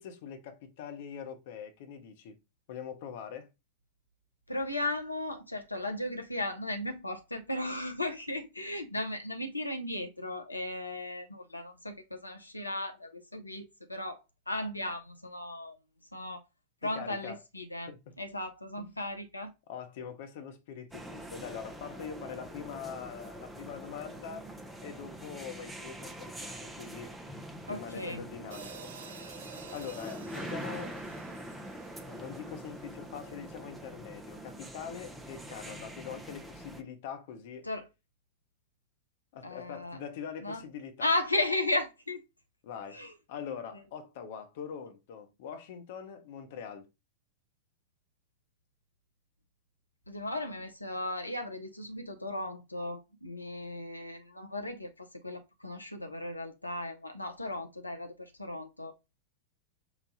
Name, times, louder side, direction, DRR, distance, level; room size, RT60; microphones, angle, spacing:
voice 1, 0.0-2.4 2.7-3.5 16.8-17.4 17.9-18.0 18.8-18.9 19.7-24.5 24.8-27.2 27.7-28.9 29.7-31.0 32.1-37.7 39.3-41.1 42.6-43.0 43.3-46.9, left 7 dB, 50° left, 0.9 m, -43 dB
voice 2, 4.5-14.2 14.5-15.8 16.1-16.4 16.8-17.9 18.2-19.5 27.7-28.2 37.6-37.9 39.4-40.0 40.4-40.6 41.0-42.2 42.9-43.1 50.1-58.9, left 1 dB, 85° left, 0.6 m, -36 dB
sound 1, 20.9-36.8, right 1 dB, 5° right, 0.7 m, -44 dB
sound 2, 28.5-32.9, right 6 dB, 65° right, 0.7 m, -50 dB
5.0 x 2.3 x 3.9 m
figure-of-eight pair, 90°, 0 cm